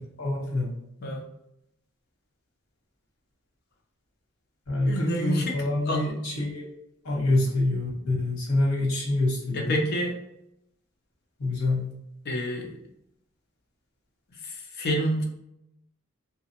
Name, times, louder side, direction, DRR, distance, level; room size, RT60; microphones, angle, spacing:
voice 1, 0.2-0.8 4.7-6.7 7.0-9.8 11.4-11.9, left 2 dB, 70° left, -3 dB, 1.2 m, -26 dB
voice 2, 4.9-5.6 5.9-6.1 9.5-10.2 12.2-12.8 14.3-15.2, equal, 50° left, 0 dB, 0.6 m, -28 dB
2.9 x 2.3 x 2.9 m, 0.81 s
head